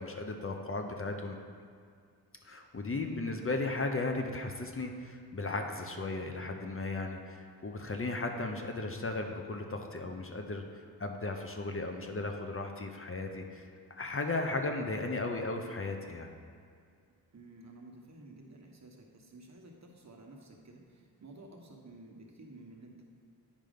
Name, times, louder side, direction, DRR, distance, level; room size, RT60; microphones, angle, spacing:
voice 1, 0.0-1.4 2.4-16.3, left 2 dB, 35° left, 4 dB, 0.8 m, -36 dB
voice 2, 3.0-3.5 17.3-23.0, right 2 dB, 45° right, 1 dB, 1.2 m, -52 dB
9.5 x 5.2 x 5.2 m, 2.2 s
wide cardioid pair, 100°, 37 cm